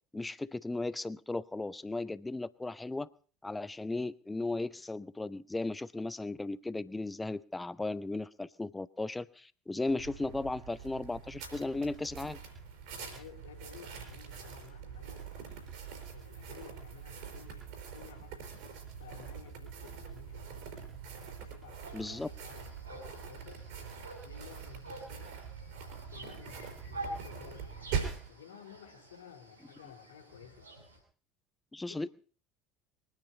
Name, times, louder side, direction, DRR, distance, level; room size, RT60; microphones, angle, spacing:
voice 1, 0.1-3.1 3.4-12.4 21.9-22.3 31.7-32.1, left 2 dB, 10° left, 18 dB, 0.7 m, -36 dB
sound 1, 9.9-28.3, right 6 dB, 60° right, 4.7 m, -43 dB
voice 2, 13.0-15.3 16.1-18.3 19.0-20.7 21.2-23.6 24.2-25.3 26.1-28.0 28.3-30.7 31.9-32.1, left 8 dB, 70° left, 6 dB, 2.1 m, -54 dB
sound 2, 21.8-31.0, right 1 dB, 85° right, 5.9 m, -49 dB
23.5 x 10.0 x 5.3 m, 0.41 s
figure-of-eight pair, 65°, 0 cm